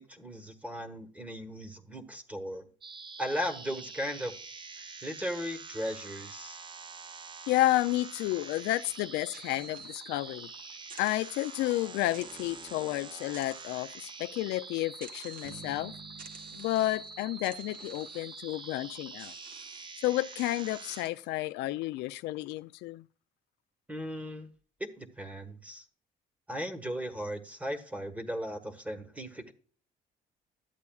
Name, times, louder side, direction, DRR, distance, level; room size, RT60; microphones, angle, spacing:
voice 1, 0.0-2.6 3.2-4.3 5.0-6.6 23.9-24.5 24.8-25.8 26.5-29.5, equal, 10° right, 1.3 m, -37 dB
sound 1, 2.8-21.0, right 4 dB, 30° right, 0.6 m, -46 dB
voice 2, 7.5-10.5 11.0-15.9 16.5-19.3 20.0-23.0, left 16 dB, 85° left, 0.4 m, -31 dB
sound 2, 9.0-10.5 10.8-11.7 12.1-12.9 13.3-14.2 15.0-15.8 16.2-17.1 17.4-18.4 19.2-19.9 20.4-21.3, right 5 dB, 55° right, 1.5 m, -53 dB
Bass guitar, 15.4-18.5, right 4 dB, 90° right, 1.5 m, -52 dB
12.0 x 8.3 x 2.3 m
cardioid pair, 110°, 17 cm